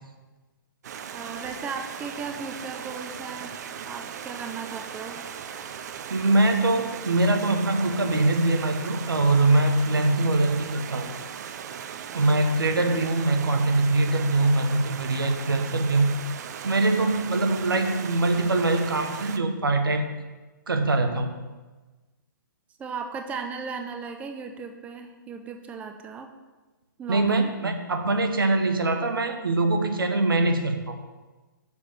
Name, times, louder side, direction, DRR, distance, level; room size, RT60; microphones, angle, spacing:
Stream, 0.8-19.4, right 8 dB, 50° right, 0.6 m, -38 dB
voice 1, 1.1-5.2 12.9-13.0 22.8-26.3 27.0-27.5, right 5 dB, 10° right, 5 dB, 0.5 m, -36 dB
voice 2, 6.1-11.1 12.1-16.1 16.6-20.1 20.7-21.3 27.1-31.0, right 2 dB, 90° right, 5 dB, 1.1 m, -23 dB
6.7 x 4.7 x 6.6 m, 1.2 s
hypercardioid pair, 135°, 11 cm